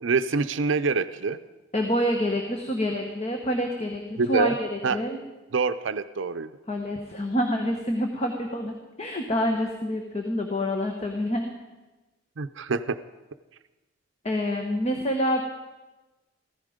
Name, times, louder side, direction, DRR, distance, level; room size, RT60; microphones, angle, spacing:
voice 1, 0.0-1.4 4.2-4.5 4.8-5.0 5.5-6.5 12.4-13.0, right 4 dB, 65° right, 11 dB, 0.5 m, -25 dB
voice 2, 1.7-5.2 6.7-11.5 14.2-15.4, equal, 30° left, 3 dB, 1.2 m, -27 dB
15.5 x 14.5 x 5.1 m, 1.1 s
head